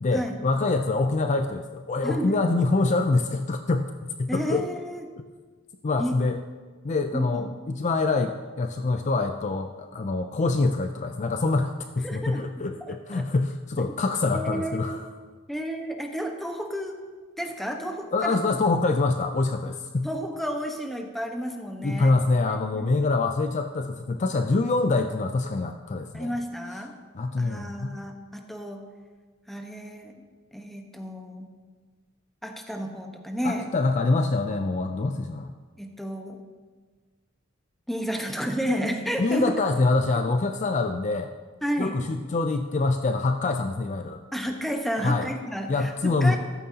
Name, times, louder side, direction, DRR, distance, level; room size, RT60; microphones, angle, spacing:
voice 1, 0.0-4.7 5.8-6.4 6.8-15.1 18.1-20.1 21.8-26.4 27.1-28.0 33.4-35.5 39.2-41.3 41.8-44.2 45.0-45.3 45.7-46.4, left 3 dB, 35° left, 7 dB, 0.4 m, -25 dB
voice 2, 2.0-2.4 4.3-5.0 6.0-6.1 7.1-7.5 12.0-12.5 12.8-13.2 14.3-15.0 15.5-17.0 17.4-18.4 20.0-22.1 22.5-23.0 26.1-26.9 27.4-28.8 29.5-30.1 30.5-31.5 32.4-33.7 35.8-36.4 37.9-39.5 41.6-42.0 44.3-46.4, equal, ahead, 3 dB, 1.1 m, -31 dB
14.0 x 13.0 x 2.8 m, 1.4 s
head